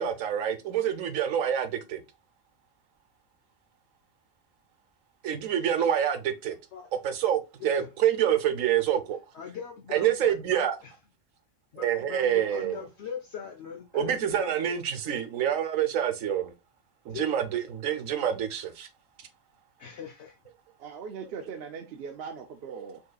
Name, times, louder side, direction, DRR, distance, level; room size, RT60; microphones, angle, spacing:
voice 1, 0.0-2.0 5.2-6.6 7.0-9.2 9.9-10.8 11.8-12.8 13.9-16.5 17.1-18.9, right 9 dB, 85° right, 1.2 m, -27 dB
voice 2, 7.6-7.9 9.3-10.9 11.7-14.8 17.1-17.2 19.8-20.4, left 7 dB, 60° left, 1.0 m, -41 dB
voice 3, 20.8-23.0, right 6 dB, 60° right, 0.7 m, -40 dB
5.3 x 3.8 x 2.3 m
omnidirectional pair, 1.3 m